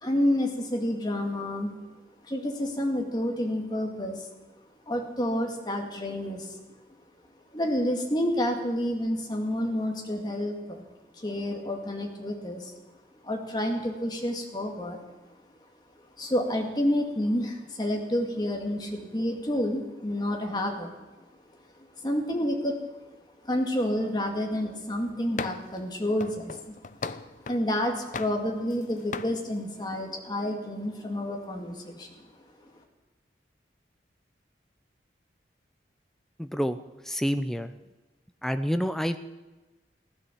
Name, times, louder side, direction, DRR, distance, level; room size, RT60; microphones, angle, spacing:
voice 1, 0.0-1.7 2.3-4.3 4.9-6.6 7.5-10.8 11.2-12.7 13.2-15.0 16.2-20.9 22.0-22.8 23.4-26.7 27.5-32.3, left 1 dB, 25° left, 2 dB, 2.1 m, -29 dB
sound 1, 25.4-25.8 26.2-27.7 28.1-28.8 29.1-29.4, left 4 dB, 45° left, 0.5 m, -37 dB
voice 2, 37.1-37.7 38.4-39.2, equal, ahead, 9 dB, 0.6 m, -27 dB
16.0 x 11.5 x 7.3 m, 1.1 s
head